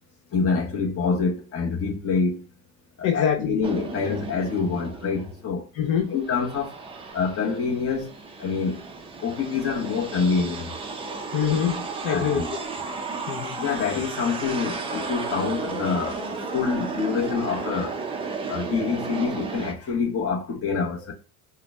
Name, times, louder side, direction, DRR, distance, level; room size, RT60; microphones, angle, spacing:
voice 1, 0.3-2.4 3.0-5.7 6.1-6.7 7.1-8.8 9.2-10.7 12.1-12.5 13.6-18.0 18.5-21.1, left 5 dB, 30° left, 0.9 m, -26 dB
voice 2, 3.0-3.6 4.1-4.2 5.7-6.1 11.3-12.6 13.3-13.6, left 8 dB, 45° left, 0.5 m, -25 dB
sound 1, 3.6-5.4 5.9-19.7, right 4 dB, 15° right, 0.4 m, -34 dB
3.8 x 2.2 x 3.4 m
cardioid pair, 120°, 45 cm